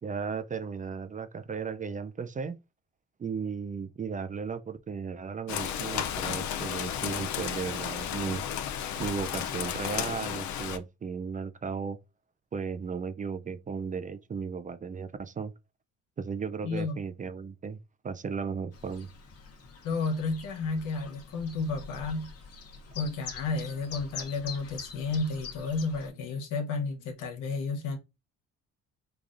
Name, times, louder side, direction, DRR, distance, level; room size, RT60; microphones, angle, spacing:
voice 1, 0.0-2.6 3.2-8.4 9.0-12.0 12.5-15.5 16.2-17.8 18.0-19.1, right 5 dB, 25° right, 0.4 m, -35 dB
Rain, 5.5-10.8, left 9 dB, 70° left, 0.5 m, -33 dB
Chirp tweet, 18.7-26.1, left 5 dB, 50° left, 0.9 m, -45 dB
voice 2, 19.8-22.3 22.9-28.0, left 3 dB, 85° left, 0.9 m, -32 dB
4.9 x 2.3 x 2.5 m
cardioid pair, 90°, 30 cm